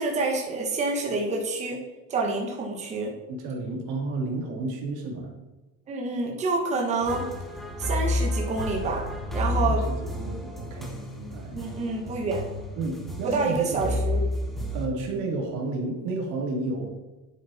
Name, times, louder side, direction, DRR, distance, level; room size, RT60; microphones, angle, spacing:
voice 1, 0.0-1.8 2.1-3.1 5.9-7.3 7.8-9.0 9.3-9.9 11.5-12.5 13.2-14.2, right 3 dB, 20° right, 0 dB, 1.5 m, -27 dB
voice 2, 3.3-5.3 9.6-11.6 12.8-14.0 14.7-17.0, right 3 dB, 60° right, 0 dB, 3.0 m, -32 dB
sound 1, 7.0-14.9, left 1 dB, ahead, 1.1 m, -30 dB
11.0 x 8.1 x 4.3 m, 1.1 s
cardioid pair, 175°, 34 cm